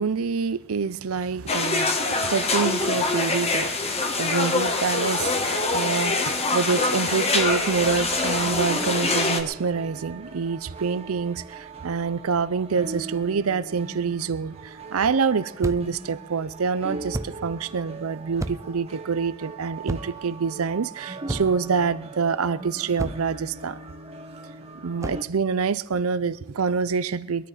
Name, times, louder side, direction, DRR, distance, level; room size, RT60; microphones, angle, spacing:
voice 1, 0.0-5.3 5.7-23.8 24.8-27.5, right 5 dB, 85° right, 0.6 m, -26 dB
sound 1, 1.5-9.4, left 3 dB, 30° left, 1.4 m, -24 dB
sound 2, 7.3-25.2, right 3 dB, 30° right, 1.3 m, -40 dB
sound 3, 15.6-16.0 17.1-17.4 18.4-18.8 19.9-20.3 21.3-21.7 23.0-23.4 25.0-25.3, right 1 dB, 15° right, 0.5 m, -32 dB
21.5 x 13.0 x 4.1 m
head